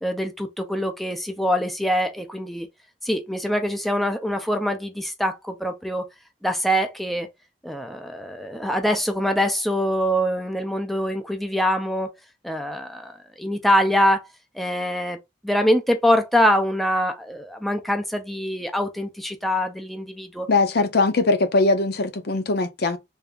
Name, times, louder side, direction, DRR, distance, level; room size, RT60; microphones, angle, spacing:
voice 1, 0.0-2.7 3.0-6.0 6.4-7.3 7.6-12.1 12.4-14.3 14.5-15.2 15.4-20.5, equal, ahead, 0.6 m, -24 dB
voice 2, 20.5-23.0, left 3 dB, 60° left, 0.7 m, -21 dB
3.5 x 2.7 x 3.4 m
head